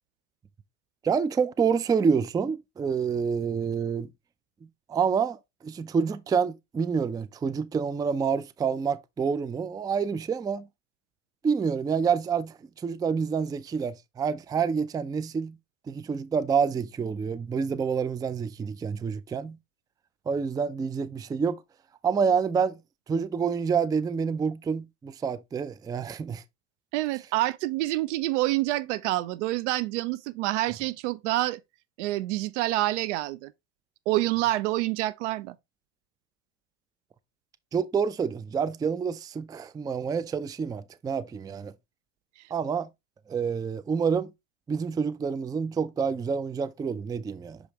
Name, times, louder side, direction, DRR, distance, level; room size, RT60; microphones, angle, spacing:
voice 1, 1.0-4.1 4.9-10.7 11.4-15.6 15.9-19.6 20.3-21.6 22.0-22.8 23.1-26.4 37.7-41.7 42.5-42.9 43.3-44.3 44.7-47.6, right 6 dB, 10° right, 0.4 m, -28 dB
voice 2, 26.9-31.6 32.0-33.5 34.1-35.5, right 17 dB, 70° right, 0.6 m, -27 dB
6.4 x 4.9 x 3.0 m
hypercardioid pair, 80°, 38 cm